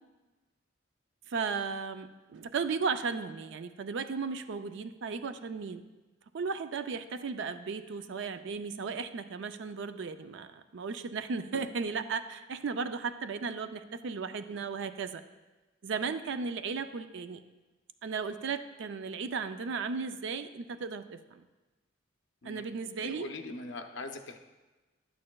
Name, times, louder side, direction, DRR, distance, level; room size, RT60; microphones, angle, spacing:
voice 1, 1.3-5.8 6.3-15.2 15.8-17.4 18.0-21.4 22.4-23.3, right 5 dB, 65° right, 10 dB, 0.4 m, -35 dB
voice 2, 23.0-24.4, left 2 dB, 65° left, 5 dB, 0.7 m, -41 dB
11.0 x 8.6 x 2.3 m, 1.2 s
head